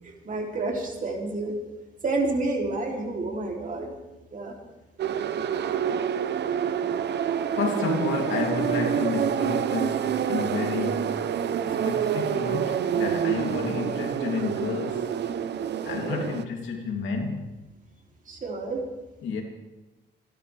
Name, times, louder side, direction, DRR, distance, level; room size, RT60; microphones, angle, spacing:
voice 1, 0.0-1.5 2.0-4.0 4.3-4.6 11.7-11.8 15.7-16.2 18.3-18.8, right 2 dB, 40° right, 1 dB, 3.1 m, -30 dB
sound 1, 5.0-16.4, right 8 dB, 60° right, 0.8 m, -27 dB
voice 2, 7.5-11.3 11.6-15.1 15.8-17.5 19.2-19.4, left 5 dB, 75° left, 1 dB, 2.9 m, -30 dB
27.5 x 12.0 x 3.4 m, 1.1 s
cardioid pair, 90°, 20 cm